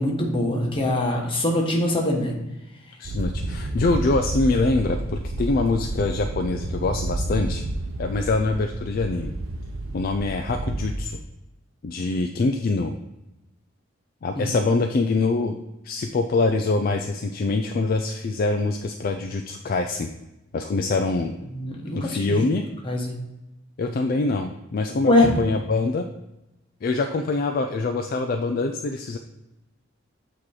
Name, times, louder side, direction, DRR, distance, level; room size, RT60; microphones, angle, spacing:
voice 1, 0.0-2.3 14.3-14.6 21.5-22.5 22.8-23.1 25.1-25.3, left 1 dB, 25° left, 0 dB, 1.2 m, -23 dB
voice 2, 3.0-7.6 8.0-9.3 9.9-11.2 11.8-12.9 14.2-15.6 15.8-20.1 20.5-21.3 21.9-22.6 23.8-26.1 26.8-29.2, left 3 dB, 45° left, 5 dB, 0.3 m, -24 dB
sound 1, 3.0-11.0, right 2 dB, 80° right, 0.6 m, -30 dB
8.3 x 3.0 x 4.8 m, 0.95 s
head